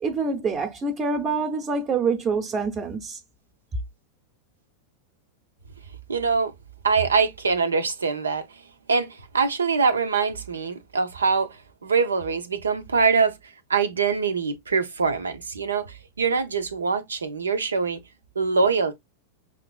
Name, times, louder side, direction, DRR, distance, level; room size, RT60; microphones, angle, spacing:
voice 1, 0.0-3.2, right 4 dB, 25° right, 0.7 m, -26 dB
voice 2, 6.1-6.5 6.8-8.4 8.9-13.3 13.7-18.0 18.4-19.0, right 5 dB, 90° right, 0.6 m, -23 dB
5.7 x 2.5 x 2.2 m
hypercardioid pair, 100°, 0 cm